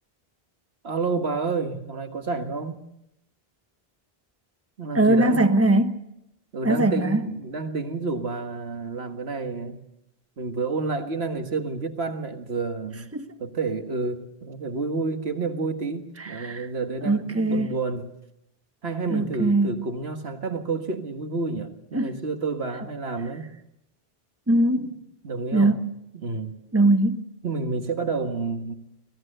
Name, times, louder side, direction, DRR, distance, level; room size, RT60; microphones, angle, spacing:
voice 1, 0.8-2.8 4.8-5.5 6.5-9.8 10.4-13.1 13.4-18.1 18.8-23.5 24.8-25.0 25.2-25.8 26.1-26.6 27.4-28.7, right 4 dB, 85° right, 1.9 m, -29 dB
voice 2, 4.9-6.0 6.6-7.2 13.1-13.3 16.2-16.7 17.0-17.7 19.1-19.7 21.9-22.2 24.5-24.9 25.5-25.9 26.7-27.2, right 2 dB, 15° right, 1.1 m, -21 dB
25.0 x 17.5 x 6.7 m
omnidirectional pair, 1.0 m